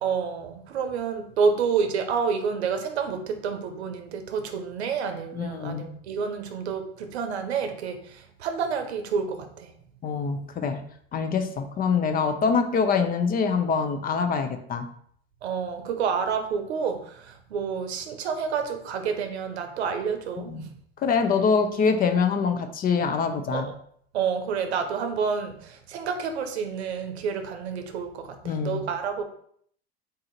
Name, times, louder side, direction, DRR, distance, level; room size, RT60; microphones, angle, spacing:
voice 1, 0.0-9.7 15.4-20.7 23.5-23.7 24.1-29.2, right 6 dB, 85° right, 7 dB, 0.7 m, -29 dB
voice 2, 5.3-5.9 10.0-10.8 11.1-14.9 20.5-20.6 21.0-23.7 28.4-28.8, left 5 dB, 30° left, 7 dB, 0.5 m, -24 dB
3.9 x 2.8 x 3.9 m, 0.64 s
hypercardioid pair, 95°, 32 cm